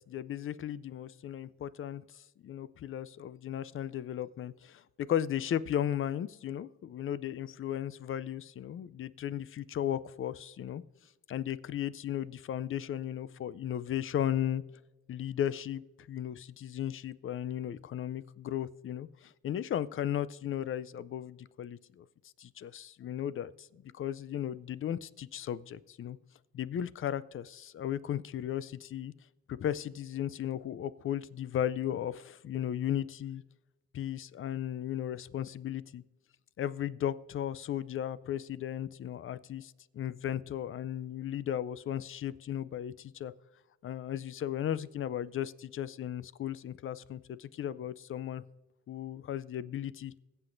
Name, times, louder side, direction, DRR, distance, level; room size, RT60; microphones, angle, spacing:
voice 1, 0.1-10.8 11.3-14.6 15.1-15.8 16.1-22.0 22.4-26.2 26.5-29.1 29.5-33.4 33.9-36.0 36.6-43.3 43.8-48.4 48.9-50.1, left 10 dB, 45° left, 17 dB, 0.5 m, -35 dB
20.5 x 7.8 x 2.6 m, 1.1 s
cardioid pair, 90°, 30 cm